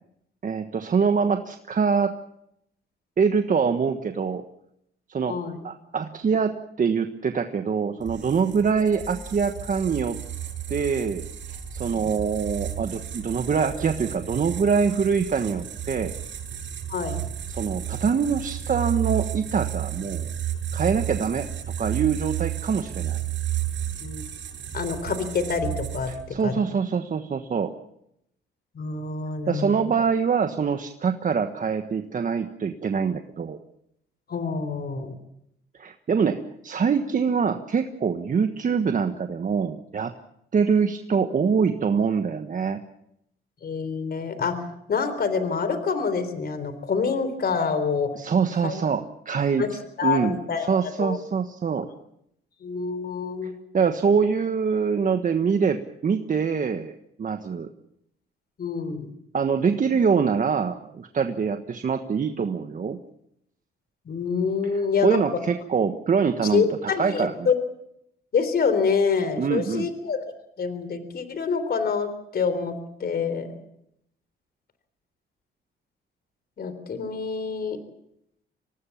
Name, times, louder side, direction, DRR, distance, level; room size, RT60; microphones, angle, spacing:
voice 1, 0.4-2.2 3.2-4.4 5.1-5.4 5.6-10.2 10.7-16.1 17.5-20.3 20.7-21.5 21.8-23.2 26.1-27.7 29.5-33.6 35.8-40.1 40.5-42.8 48.1-50.4 50.7-51.9 53.4-57.7 59.3-63.0 64.7-67.3 69.4-69.9, right 6 dB, 40° right, 7 dB, 1.4 m, -24 dB
voice 2, 5.3-5.6 11.9-12.1 16.9-17.2 24.0-24.2 24.7-26.1 26.4-26.5 28.8-29.9 34.3-35.1 43.6-44.6 44.9-48.1 48.6-48.8 49.6-49.7 50.0-51.2 52.6-53.5 58.6-59.1 64.1-65.2 66.5-67.5 68.3-70.2 70.6-73.6 76.6-77.8, left 5 dB, 50° left, 12 dB, 3.8 m, -26 dB
sound 1, 8.0-26.4, right 11 dB, 70° right, 7.6 m, -32 dB
25.5 x 18.5 x 7.3 m, 0.77 s
cardioid pair, 90°, 20 cm